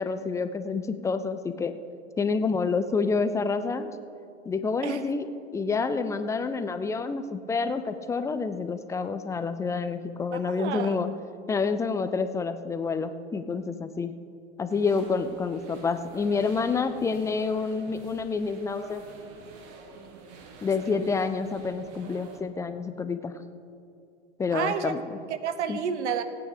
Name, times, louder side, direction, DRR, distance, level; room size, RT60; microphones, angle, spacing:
voice 1, 0.0-1.7 2.2-3.9 4.5-5.3 5.5-11.1 11.5-14.1 14.6-19.0 20.6-23.3 24.4-25.2 25.7-25.8, left 4 dB, 10° left, 10 dB, 0.4 m, -28 dB
voice 2, 10.3-11.0 20.9-21.1 24.5-24.9 25.3-26.2, right 7 dB, 70° right, 11 dB, 1.0 m, -30 dB
sound 1, 14.7-22.4, right 4 dB, 40° right, 1.7 m, -48 dB
17.0 x 9.0 x 5.0 m, 2.5 s
hypercardioid pair, 110°, 36 cm